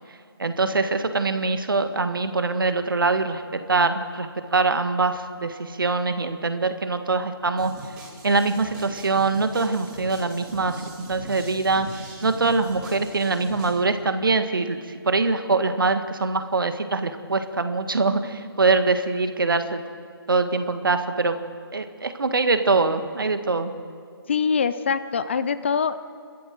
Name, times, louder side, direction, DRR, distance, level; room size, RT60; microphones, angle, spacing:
voice 1, 0.4-7.7 8.2-19.8 20.3-21.4 21.7-23.7, right 3 dB, 60° right, 9 dB, 1.6 m, -23 dB
sound 1, 7.6-13.8, right 2 dB, 15° right, 3.6 m, -40 dB
voice 2, 24.3-26.0, left 6 dB, 30° left, 13 dB, 0.6 m, -24 dB
28.0 x 13.5 x 7.6 m, 2.2 s
figure-of-eight pair, 150°, 13 cm